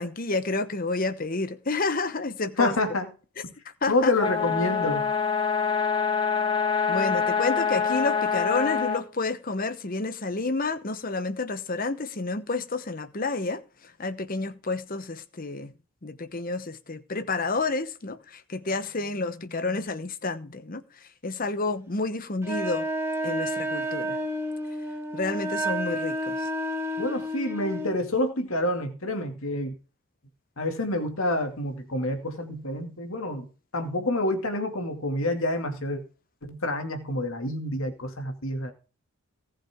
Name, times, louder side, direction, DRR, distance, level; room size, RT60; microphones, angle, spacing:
voice 1, 0.0-2.8 3.8-4.1 6.9-15.7 16.0-22.9 23.2-24.2 25.1-26.5, left 3 dB, 40° left, 0.9 m, -30 dB
voice 2, 2.6-3.1 3.9-5.1 27.0-29.7 30.6-33.5 33.7-36.0 36.4-38.7, left 1 dB, 70° left, 2.3 m, -28 dB
sound 1, 4.2-9.0, left 6 dB, 20° left, 2.0 m, -25 dB
Wind instrument woodwind instrument, 22.4-28.0, equal, 10° right, 1.6 m, -30 dB
18.0 x 7.5 x 3.6 m
head